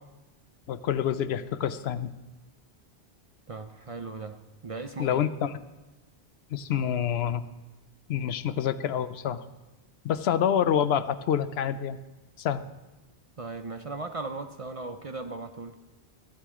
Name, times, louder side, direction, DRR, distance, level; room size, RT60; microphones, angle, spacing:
voice 1, 0.7-2.1 5.0-5.5 6.5-7.4 8.1-9.4 10.0-12.0 12.4-12.6, left 9 dB, 75° left, 13 dB, 0.8 m, -27 dB
voice 2, 3.5-5.2 13.4-15.7, right 3 dB, 45° right, 7 dB, 0.5 m, -37 dB
15.0 x 11.5 x 3.6 m, 1.1 s
omnidirectional pair, 1.1 m